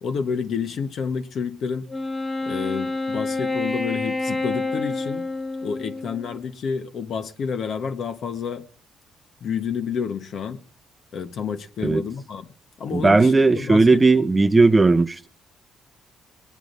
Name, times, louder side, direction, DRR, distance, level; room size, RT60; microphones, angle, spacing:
voice 1, 0.0-1.9 2.4-5.2 5.6-8.7 9.4-10.6 11.1-12.5 12.8-14.0, left 6 dB, 65° left, 1.3 m, -29 dB
Wind instrument woodwind instrument, 1.9-6.4, left 2 dB, 15° left, 1.2 m, -28 dB
voice 2, 12.9-15.3, right 3 dB, 20° right, 0.7 m, -16 dB
20.0 x 9.8 x 4.0 m
cardioid pair, 90°, 0 cm